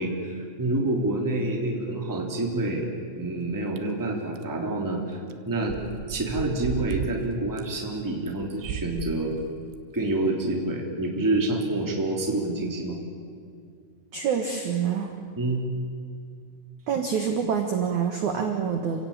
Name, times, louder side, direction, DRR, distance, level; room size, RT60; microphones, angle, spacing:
voice 1, 0.0-5.2 5.5-5.8 6.1-9.3 9.9-13.0 15.4-15.6, right 2 dB, 5° right, 0 dB, 2.1 m, -27 dB
sound 1, 3.8-3.9 4.4-4.5 5.3-5.4 5.7-7.2 7.6-7.7 8.4-9.2 9.7-9.8 10.4-10.5, right 8 dB, 80° right, 3.3 m, -34 dB
voice 2, 14.1-15.1 16.9-19.0, right 7 dB, 60° right, 4 dB, 2.0 m, -26 dB
28.5 x 16.5 x 8.8 m, 2.2 s
omnidirectional pair, 5.5 m